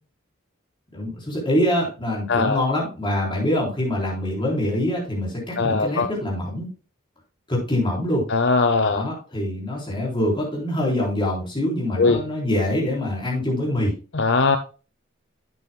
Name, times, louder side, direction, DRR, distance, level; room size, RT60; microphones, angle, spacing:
voice 1, 0.9-6.7 7.5-8.3 8.9-13.9, left 1 dB, 25° left, -3 dB, 3.9 m, -24 dB
voice 2, 2.3-2.6 5.6-6.1 8.3-9.0 12.0-12.2 14.1-14.6, left 4 dB, 65° left, 8 dB, 0.7 m, -20 dB
11.0 x 8.3 x 2.3 m, 0.34 s
head